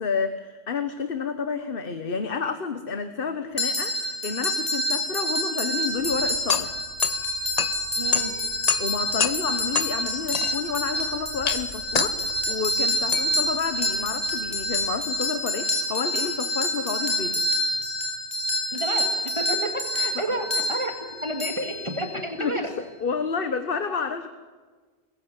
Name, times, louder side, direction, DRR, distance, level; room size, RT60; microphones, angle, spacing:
voice 1, 0.0-6.7 8.8-17.4 20.1-20.3 22.4-24.3, left 5 dB, 60° left, 10 dB, 1.4 m, -30 dB
sound 1, 3.6-22.4, left 1 dB, 25° left, 5.0 m, -28 dB
sound 2, 6.0-15.2, left 5 dB, 40° left, 0.9 m, -30 dB
voice 2, 8.0-8.3 18.7-19.1 19.3-20.9 21.2-22.7, right 1 dB, 30° right, 5 dB, 2.3 m, -30 dB
22.5 x 14.5 x 9.9 m, 1.4 s
omnidirectional pair, 1.1 m